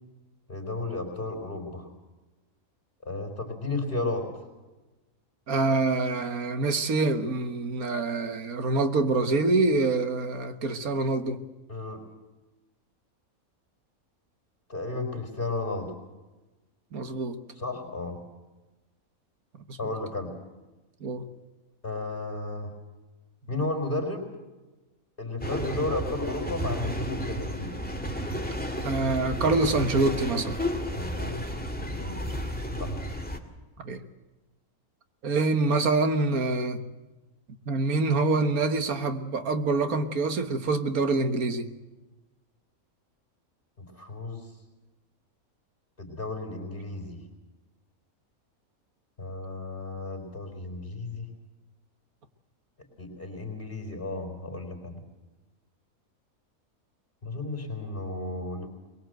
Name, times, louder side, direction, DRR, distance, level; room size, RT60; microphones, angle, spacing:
voice 1, 0.5-1.9 3.0-4.3 11.7-12.0 14.7-15.9 17.6-18.2 19.8-20.3 21.8-22.7 23.5-24.3 25.2-27.7 31.0-31.6 31.9-32.2 32.8-32.9 43.8-44.5 46.0-47.2 49.2-51.3 53.0-55.0 57.2-58.7, left 2 dB, 40° left, 3 dB, 4.5 m, -33 dB
voice 2, 5.5-11.4 16.9-17.4 19.7-19.9 21.0-21.2 28.8-30.6 33.8-34.0 35.2-36.8 37.7-41.7, right 3 dB, 85° right, 8 dB, 1.9 m, -26 dB
sound 1, 25.4-33.4, equal, 5° left, 2.1 m, -32 dB
22.5 x 21.5 x 8.0 m, 1.1 s
omnidirectional pair, 1.5 m